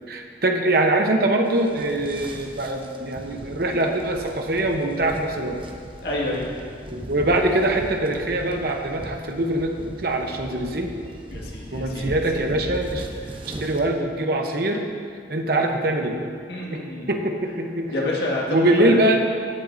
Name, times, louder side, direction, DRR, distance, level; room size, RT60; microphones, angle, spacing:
voice 1, 0.1-5.6 6.9-10.9 11.7-13.1 13.5-14.9 15.3-16.2 16.7-17.9 18.5-19.2, right 1 dB, 55° right, 3 dB, 0.8 m, -23 dB
sound 1, 1.5-13.9, right 1 dB, 30° right, 0.7 m, -38 dB
voice 2, 6.0-6.5 11.3-12.2 16.5-17.1 17.9-19.0, left 1 dB, 65° left, -4 dB, 1.9 m, -28 dB
16.5 x 8.0 x 2.7 m, 2.2 s
head